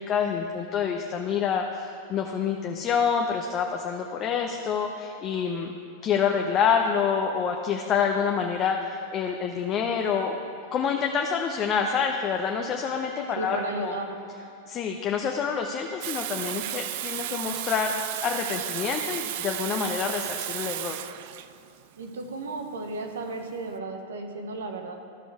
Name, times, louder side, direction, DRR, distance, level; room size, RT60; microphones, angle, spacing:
voice 1, 0.0-5.7 6.0-10.4 10.7-14.0 14.7-21.0, left 6 dB, 35° left, 3 dB, 0.7 m, -27 dB
voice 2, 13.4-14.2 22.0-25.0, right 2 dB, 80° right, 5 dB, 1.0 m, -34 dB
Water tap faucet / Sink (filling or washing), 16.0-23.7, right 14 dB, 60° right, 0.3 m, -34 dB
14.0 x 5.1 x 4.9 m, 2.7 s
hypercardioid pair, 100°, 0 cm